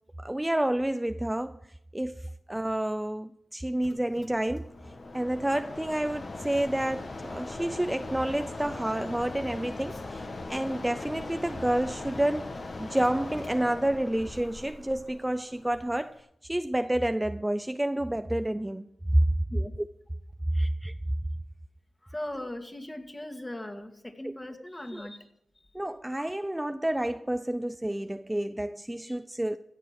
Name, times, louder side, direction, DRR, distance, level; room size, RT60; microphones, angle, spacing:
voice 1, 0.2-1.6 1.9-4.7 5.1-18.9 20.8-20.9 24.2-24.3 24.9-25.1 25.7-29.6, right 1 dB, 15° right, 0.5 m, -30 dB
Mechanisms, 3.8-16.2, left 2 dB, 55° left, 1.6 m, -40 dB
voice 2, 22.0-25.3 25.6-25.7 29.1-29.2, left 1 dB, 20° left, 2.0 m, -39 dB
16.0 x 6.8 x 6.1 m
cardioid pair, 45°, 0 cm